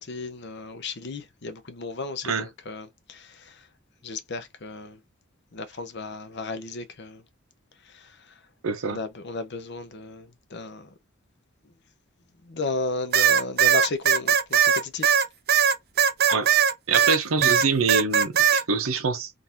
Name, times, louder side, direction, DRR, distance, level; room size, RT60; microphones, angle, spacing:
voice 1, 0.0-3.7 4.0-5.0 5.5-7.2 7.8-8.3 8.9-10.9 11.6-11.7 12.4-15.2, left 3 dB, 55° left, 0.7 m, -34 dB
voice 2, 8.6-9.0 16.3-16.5 16.9-19.3, right 4 dB, 85° right, 0.7 m, -25 dB
sound 1, 13.1-17.2 17.4-18.6, right 8 dB, 50° right, 0.5 m, -19 dB
3.8 x 2.6 x 2.8 m
head